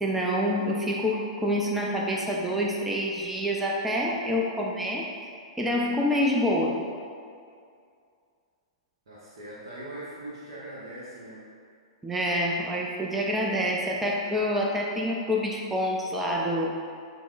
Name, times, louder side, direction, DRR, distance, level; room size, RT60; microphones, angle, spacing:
voice 1, 0.0-5.1 5.6-6.8 12.0-16.9, equal, 5° right, -2 dB, 0.3 m, -27 dB
voice 2, 9.1-11.5, right 1 dB, 60° right, -7 dB, 0.7 m, -41 dB
6.0 x 2.0 x 2.4 m, 2.3 s
figure-of-eight pair, 105°, 3 cm